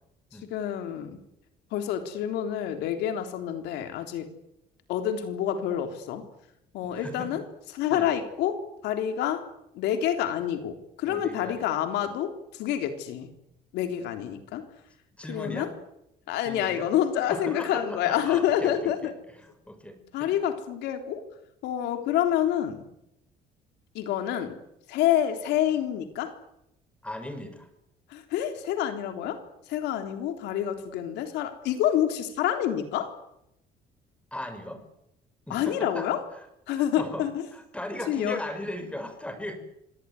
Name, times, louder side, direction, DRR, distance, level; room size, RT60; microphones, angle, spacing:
voice 1, 0.5-1.2 1.7-4.3 4.9-6.2 6.7-7.4 7.7-9.4 9.7-13.3 13.7-14.6 15.3-15.7 16.3-19.1 20.1-21.2 21.6-22.9 23.9-24.6 24.9-26.3 28.1-29.4 29.7-33.1 35.5-36.2 36.7-37.3 38.1-38.4, left 10 dB, 85° left, 7 dB, 3.6 m, -28 dB
voice 2, 6.8-7.3 7.9-8.1 11.0-11.7 15.2-15.7 16.4-16.9 17.3-20.4 27.0-27.7 34.3-34.8 35.5-36.1 36.7-37.2 37.5-39.6, left 1 dB, 5° left, 8 dB, 5.5 m, -38 dB
26.0 x 18.5 x 9.6 m, 0.83 s
cardioid pair, 110°, 17 cm